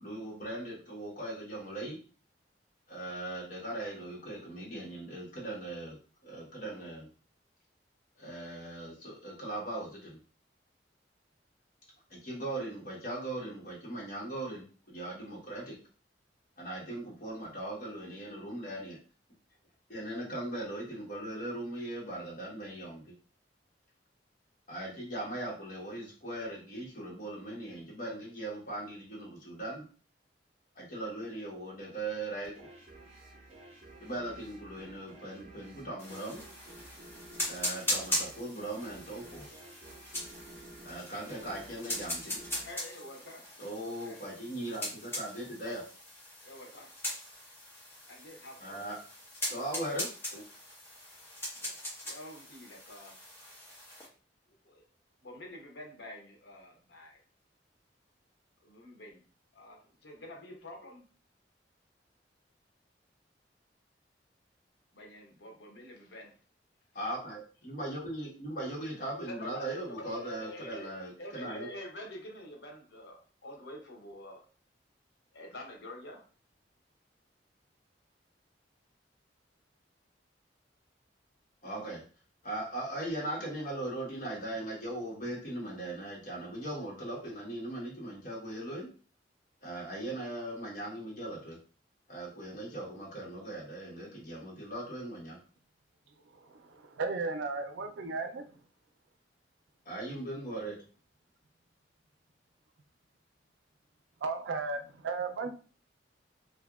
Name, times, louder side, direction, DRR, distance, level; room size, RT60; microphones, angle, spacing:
voice 1, 0.0-2.0 2.9-7.1 8.2-10.2 12.1-15.8 16.6-19.0 19.9-23.1 24.7-29.8 30.8-32.7 34.0-36.4 37.5-39.6 40.8-42.4 43.6-45.8 48.6-49.0 49.5-50.4 66.9-71.7 81.6-82.0 82.4-88.9 89.6-91.6 92.1-95.4 99.8-100.8, right 1 dB, 50° left, -4 dB, 1.2 m, -39 dB
sound 1, 32.5-43.8, right 2 dB, 40° right, 0.7 m, -53 dB
sound 2, 36.0-54.1, left 1 dB, 15° left, 0.9 m, -40 dB
voice 2, 42.6-44.4 46.4-47.0 48.1-48.9 49.6-49.7 51.5-53.2 54.6-54.8 55.2-57.2 58.6-59.2 59.5-61.0 64.9-66.4 69.3-70.9 71.2-74.4 75.3-76.2, left 1 dB, 70° left, 1 dB, 0.7 m, -47 dB
voice 3, 96.5-98.4 104.2-105.5, right 4 dB, 80° right, 7 dB, 0.4 m, -35 dB
2.8 x 2.6 x 2.3 m, 0.38 s
head